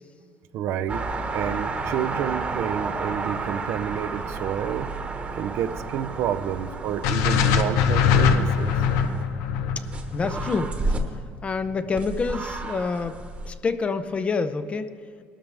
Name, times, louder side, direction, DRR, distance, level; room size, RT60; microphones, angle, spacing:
voice 1, 0.5-1.1 1.3-4.9 5.4-8.7, right 10 dB, 65° right, 10 dB, 0.6 m, -29 dB
sound 1, 0.9-9.2 9.8-11.0 12.0-13.5, right 3 dB, 30° right, 1.2 m, -31 dB
sound 2, 7.0-11.2, left 7 dB, 85° left, 0.9 m, -22 dB
voice 2, 10.1-10.8 11.4-13.2 13.5-14.9, left 4 dB, 25° left, 11 dB, 0.6 m, -27 dB
20.5 x 12.5 x 3.4 m, 2.1 s
cardioid pair, 135°, 5 cm